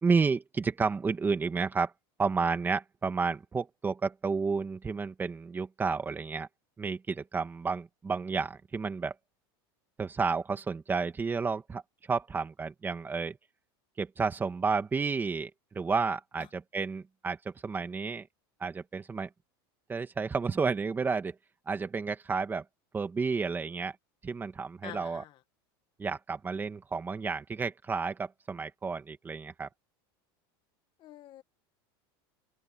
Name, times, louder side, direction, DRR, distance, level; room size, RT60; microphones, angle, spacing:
voice 1, 0.0-1.9 2.2-6.5 6.8-9.1 10.0-11.8 12.1-13.4 14.0-18.3 18.6-19.3 19.9-21.4 21.7-22.6 22.9-24.0 24.2-25.2 26.0-29.7, right 4 dB, 15° right, 2.0 m, -31 dB
voice 2, 24.8-25.4 31.0-31.4, left 12 dB, 40° left, 1.5 m, -46 dB
open air
supercardioid pair, 140°, 13 cm